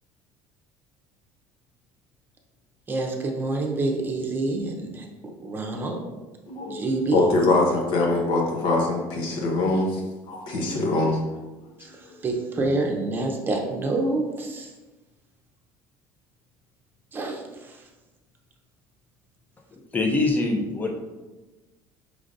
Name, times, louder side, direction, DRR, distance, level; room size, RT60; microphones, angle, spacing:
voice 1, 2.9-5.1 5.4-6.0 6.7-7.2 11.8-11.9 12.2-14.7 17.1-17.8, right 2 dB, 25° right, 1 dB, 0.7 m, -27 dB
voice 2, 7.1-10.0 10.3-11.2, left 2 dB, 65° left, -1 dB, 1.0 m, -23 dB
voice 3, 19.7-20.9, left 2 dB, 20° left, 1 dB, 0.7 m, -24 dB
5.0 x 3.3 x 2.6 m, 1.2 s
cardioid pair, 125°, 8 cm